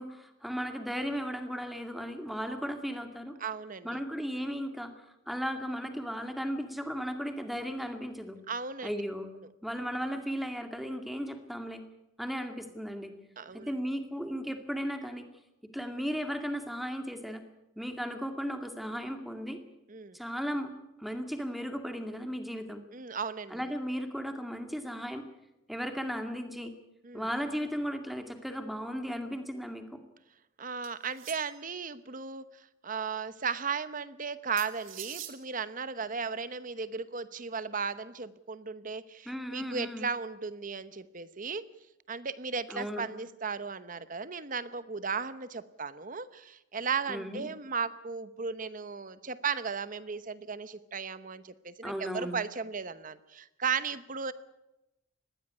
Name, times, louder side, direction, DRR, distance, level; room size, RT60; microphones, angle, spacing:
voice 1, 0.0-3.4 3.8-4.9 5.3-8.4 8.8-9.3 9.6-11.8 12.2-13.1 13.5-15.3 15.7-17.4 17.8-19.6 20.1-20.7 21.0-22.8 23.5-25.3 25.7-26.7 27.1-30.0 39.3-40.1 42.7-43.1 47.1-47.5 51.8-52.4, equal, ahead, 6 dB, 2.1 m, -35 dB
voice 2, 3.4-4.0 8.5-9.0 13.4-13.7 19.9-20.2 22.9-23.7 27.0-27.3 30.6-32.4 32.8-41.6 42.1-54.3, right 5 dB, 40° right, 14 dB, 0.9 m, -36 dB
sound 1, 30.8-31.8 34.6-35.4, right 12 dB, 80° right, 2.5 m, -44 dB
20.5 x 15.5 x 9.7 m, 0.93 s
head